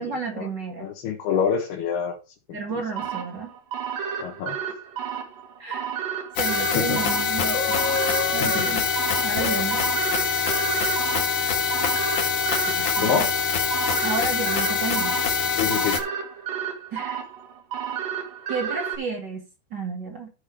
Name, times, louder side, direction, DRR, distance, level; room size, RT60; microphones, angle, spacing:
voice 1, 0.0-0.9 2.5-3.5 5.6-5.9 6.3-7.6 8.3-8.8 9.2-9.9 12.7-13.3 14.0-15.2 16.9-17.2 18.5-20.3, right 4 dB, 40° right, 1.7 m, -32 dB
voice 2, 0.8-2.2 4.2-4.6 6.7-7.0 8.4-8.7 13.0-13.3 15.6-16.0, left 7 dB, 85° left, 3.4 m, -26 dB
sound 1, 3.0-19.0, right 8 dB, 65° right, 3.2 m, -32 dB
sound 2, 6.4-16.0, left 6 dB, 50° left, 2.4 m, -24 dB
15.0 x 5.2 x 3.3 m
omnidirectional pair, 4.5 m